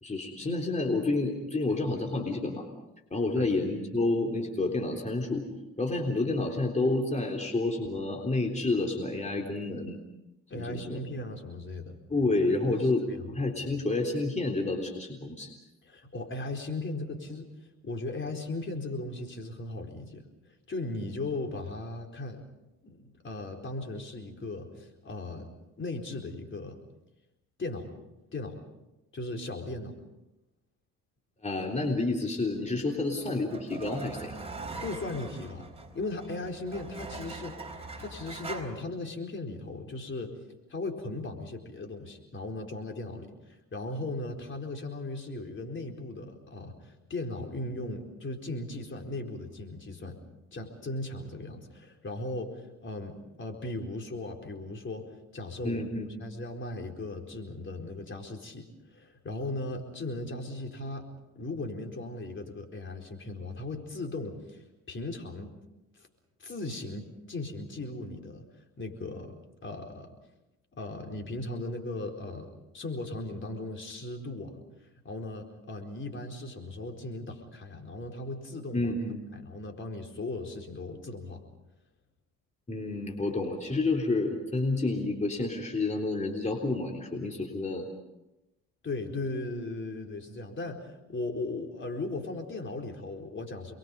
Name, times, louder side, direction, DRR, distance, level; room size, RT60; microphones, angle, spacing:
voice 1, 0.0-2.7 3.1-5.4 5.8-10.0 10.5-11.0 12.1-15.5 31.4-34.3 55.6-56.1 78.7-79.2 82.7-87.9, left 2 dB, 25° left, 1 dB, 3.7 m, -29 dB
voice 2, 10.5-12.0 12.7-13.4 15.8-17.5 17.8-20.2 20.7-22.4 22.8-25.5 25.8-26.8 27.6-27.9 28.3-28.6 29.1-29.9 34.8-40.4 40.7-50.2 50.5-55.1 55.3-55.8 56.2-61.1 61.3-65.5 66.0-66.1 66.4-68.5 68.8-69.4 69.6-70.1 70.8-72.5 72.7-78.9 79.3-81.4 88.8-93.7, left 2 dB, 40° left, 3 dB, 4.4 m, -37 dB
sound 1, 32.7-38.6, right 3 dB, 20° right, 4.2 m, -42 dB
28.5 x 22.5 x 5.5 m, 0.95 s
cardioid pair, 90°, 30 cm